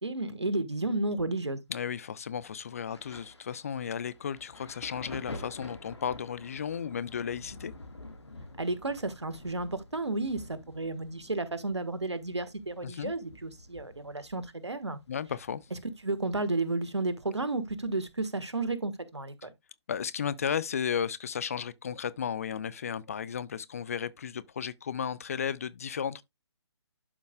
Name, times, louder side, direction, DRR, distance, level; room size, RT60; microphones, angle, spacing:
voice 1, 0.0-1.6 8.6-15.0 16.0-19.5, right 2 dB, 75° right, 1.4 m, -32 dB
voice 2, 1.7-7.7 12.8-13.1 15.1-15.6 19.9-26.2, left 8 dB, 30° left, 0.4 m, -34 dB
Thunder, 2.9-16.2 16.5-17.8 18.7-18.8, left 2 dB, 70° left, 1.6 m, -48 dB
12.0 x 5.1 x 2.2 m
figure-of-eight pair, 140°, 15 cm